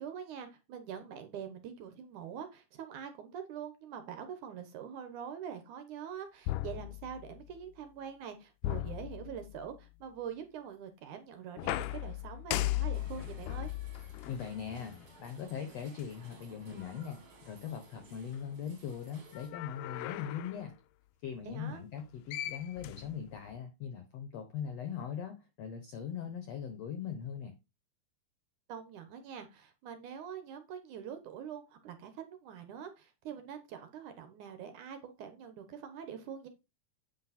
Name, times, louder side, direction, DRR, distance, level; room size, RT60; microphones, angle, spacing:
voice 1, 0.0-13.7 21.5-21.8 28.7-36.5, right 8 dB, 65° right, 2.3 m, -44 dB
sound 1, 6.5-7.6 8.6-9.8 11.6-15.2 16.0-16.1 19.3-20.6 22.0-22.1 22.3-23.6, left 15 dB, 90° left, 1.8 m, -38 dB
sound 2, 12.9-19.5, right 4 dB, 40° right, 2.4 m, -57 dB
voice 2, 14.2-20.8 21.2-27.5, left 8 dB, 75° left, 1.5 m, -40 dB
8.4 x 6.3 x 4.2 m
omnidirectional pair, 4.3 m